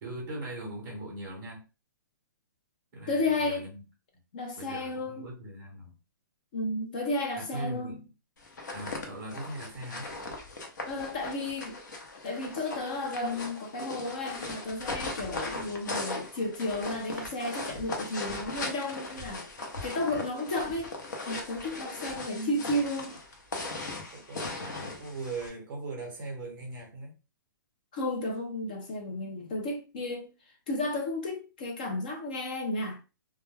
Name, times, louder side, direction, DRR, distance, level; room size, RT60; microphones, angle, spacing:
voice 1, 0.0-1.6 2.9-3.9 4.1-4.2 4.6-6.0 7.4-8.0 8.7-10.1 24.1-27.1, right 2 dB, 15° right, 0.9 m, -40 dB
voice 2, 3.1-3.7 4.3-5.3 6.5-8.0 10.9-11.8 12.2-19.4 19.8-20.9 21.3-23.2 27.9-30.3 30.7-33.0, left 2 dB, 25° left, 0.4 m, -33 dB
sound 1, 8.4-25.5, left 2 dB, 60° left, 0.7 m, -38 dB
2.2 x 2.1 x 3.2 m
hypercardioid pair, 180°, 11 cm